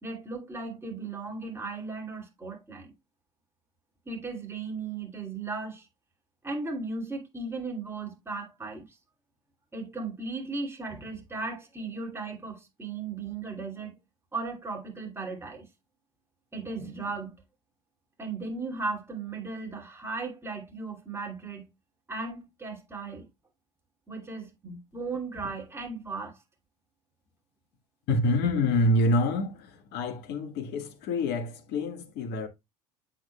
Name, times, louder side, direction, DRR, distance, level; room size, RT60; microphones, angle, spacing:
voice 1, 0.0-2.9 4.1-5.9 6.4-8.8 9.7-14.0 14.3-15.7 16.5-17.4 18.2-21.7 22.1-23.2 24.1-26.4, right 3 dB, 10° right, 2.6 m, -36 dB
voice 2, 28.1-29.5 29.9-32.5, left 1 dB, 55° left, 1.4 m, -26 dB
8.0 x 6.3 x 2.2 m
hypercardioid pair, 70°, 20 cm